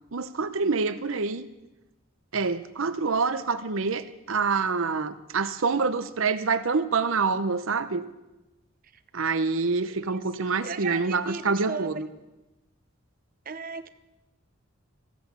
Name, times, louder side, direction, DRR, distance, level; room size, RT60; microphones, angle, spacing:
voice 1, 0.1-1.5 2.3-8.0 9.1-12.1, right 4 dB, 80° right, 13 dB, 0.8 m, -26 dB
voice 2, 10.0-11.4 11.7-11.9 13.5-13.9, right 5 dB, 45° right, 11 dB, 0.7 m, -36 dB
14.5 x 8.0 x 8.2 m, 1.0 s
head